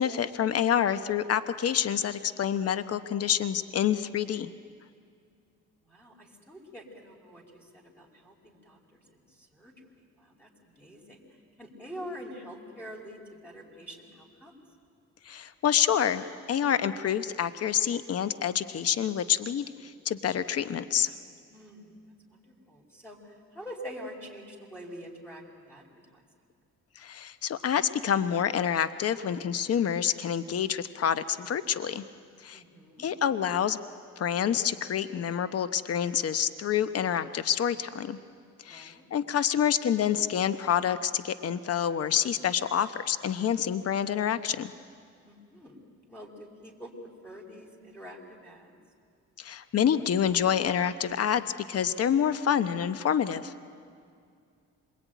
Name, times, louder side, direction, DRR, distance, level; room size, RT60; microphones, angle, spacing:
voice 1, 0.0-4.5 15.2-21.1 27.0-32.0 32.4-32.6 33.0-33.8 34.2-38.2 38.6-44.7 49.4-53.5, left 9 dB, 50° left, 12 dB, 1.0 m, -27 dB
voice 2, 5.8-11.2 11.6-14.5 21.5-21.9 22.3-26.2 32.5-33.1 38.6-39.1 45.2-48.7, equal, 5° left, -2 dB, 5.2 m, -46 dB
27.0 x 22.0 x 9.4 m, 2.3 s
cardioid pair, 90°, 30 cm